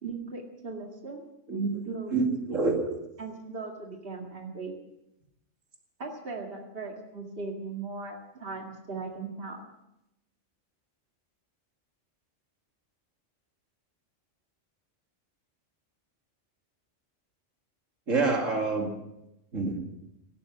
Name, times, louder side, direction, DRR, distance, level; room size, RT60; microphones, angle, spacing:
voice 1, 0.0-1.3 1.8-2.1 2.5-2.6 3.2-4.8 6.0-9.6, right 4 dB, 50° right, 1 dB, 2.3 m, -38 dB
voice 2, 1.5-1.8 2.1-2.8 18.1-18.9 19.5-19.7, right 3 dB, 90° right, 2 dB, 2.7 m, -26 dB
17.5 x 12.5 x 6.1 m, 0.88 s
omnidirectional pair, 1.3 m